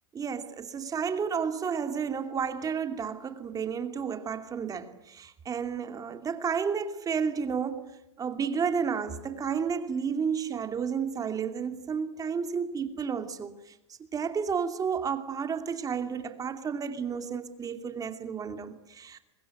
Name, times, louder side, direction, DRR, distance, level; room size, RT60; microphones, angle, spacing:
voice 1, 0.1-7.9 8.2-19.2, right 6 dB, 25° right, 2.8 m, -32 dB
25.0 x 21.0 x 9.4 m
hypercardioid pair, 115°, 16 cm